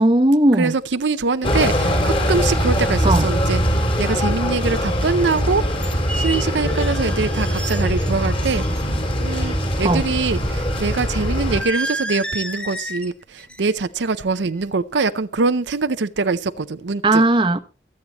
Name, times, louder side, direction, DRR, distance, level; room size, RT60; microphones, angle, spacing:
voice 1, 0.0-0.7 3.0-3.3 9.8-10.1 17.0-17.6, right 1 dB, 25° right, 0.9 m, -16 dB
voice 2, 0.6-5.6 6.2-8.6 9.2-17.2, right 4 dB, 75° right, 0.6 m, -23 dB
sound 1, 1.4-11.6, equal, 30° left, 2.8 m, -21 dB
sound 2, 5.3-5.4 5.8-8.1 8.4-8.8 11.5-13.1 13.4-13.7 14.1-14.4, right 1 dB, 5° left, 0.9 m, -31 dB
23.5 x 8.5 x 3.0 m
head